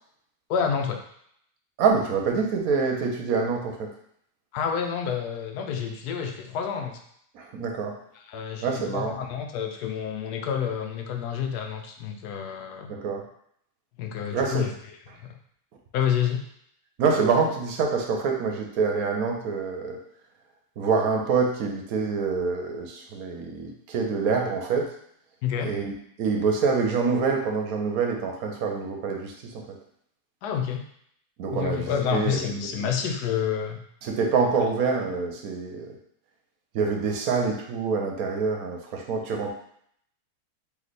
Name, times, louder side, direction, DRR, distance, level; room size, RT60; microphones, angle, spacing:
voice 1, 0.5-1.0 4.5-7.0 8.1-12.9 14.0-14.7 15.9-16.4 25.4-25.8 30.4-30.9 31.5-33.8 34.6-34.7, left 7 dB, 85° left, 4 dB, 1.2 m, -28 dB
voice 2, 1.8-3.9 7.3-7.9 8.6-9.1 12.9-13.2 14.3-14.6 17.0-20.0 20.8-24.9 25.6-29.6 31.4-32.4 32.8-32.9 34.0-35.9 36.7-39.5, right 5 dB, 70° right, 2 dB, 1.1 m, -26 dB
3.2 x 3.1 x 4.0 m, 0.68 s
omnidirectional pair, 1.6 m